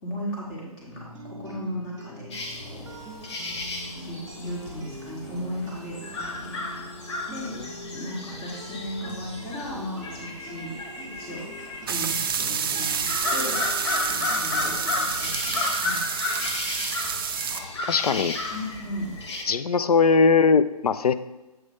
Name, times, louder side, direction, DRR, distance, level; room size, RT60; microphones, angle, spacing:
voice 1, 0.0-2.3 2.6-2.9 4.0-6.6 7.2-7.5 7.9-11.4 11.9-13.6 14.1-16.3 18.5-19.1, equal, 20° left, -3 dB, 1.6 m, -36 dB
sound 1, 0.9-14.7, right 1 dB, 15° right, 1.3 m, -43 dB
sound 2, 2.3-19.4, left 2 dB, 45° left, 1.0 m, -33 dB
sound 3, 11.9-17.6, right 7 dB, 35° right, 0.4 m, -29 dB
voice 2, 17.5-18.4 19.5-21.1, left 5 dB, 70° left, 13 dB, 0.4 m, -21 dB
7.5 x 3.2 x 5.4 m, 1.1 s
figure-of-eight pair, 150°, 20 cm